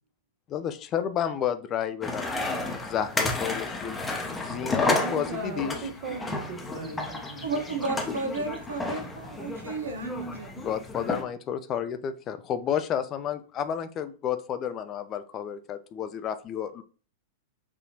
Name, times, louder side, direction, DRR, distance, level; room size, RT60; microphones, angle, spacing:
voice 1, 0.5-4.0 4.4-5.7 10.6-16.8, left 9 dB, 35° left, 0.3 m, -31 dB
sound 1, 2.0-11.2, left 2 dB, 15° left, 0.7 m, -32 dB
voice 2, 4.5-8.1, right 3 dB, 55° right, 1.1 m, -38 dB
voice 3, 7.4-10.6, right 3 dB, 75° right, 0.6 m, -33 dB
4.0 x 2.7 x 2.8 m
figure-of-eight pair, 95°, 0 cm